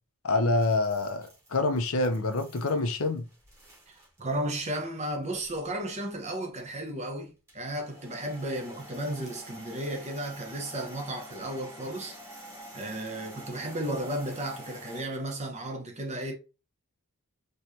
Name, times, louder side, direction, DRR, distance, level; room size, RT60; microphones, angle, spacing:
voice 1, 0.2-3.3, left 2 dB, 65° left, 0.7 m, -26 dB
sound 1, 0.6-4.2 4.5-4.6 5.2-5.6 7.5-15.0, right 1 dB, 15° right, 2.1 m, -48 dB
voice 2, 3.9-12.2 12.7-16.3, right 1 dB, 30° right, 1.1 m, -34 dB
4.4 x 3.2 x 2.8 m
head